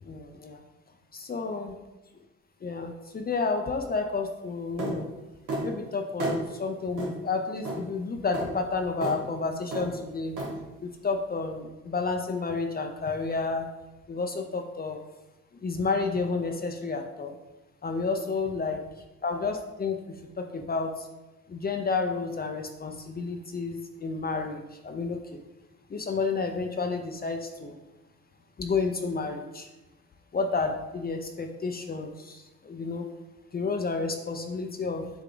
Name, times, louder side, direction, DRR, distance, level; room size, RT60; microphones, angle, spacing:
voice 1, 0.0-0.6 1.1-1.8 2.6-5.1 5.6-10.4 10.8-13.7 14.1-15.0 15.5-17.3 17.8-18.8 19.2-21.1 21.5-25.4 25.9-27.8 28.6-29.7 30.3-33.1 33.5-35.1, left 4 dB, 30° left, 4 dB, 0.6 m, -31 dB
sound 1, 4.8-5.0 5.5-5.7 6.2-6.4 7.0-7.1 7.6-7.8 8.3-8.5 9.0-9.2 9.7-9.9 10.4-10.5, right 2 dB, 90° right, 1.8 m, -31 dB
6.9 x 3.6 x 3.8 m, 1.0 s
cardioid pair, 90°, 30 cm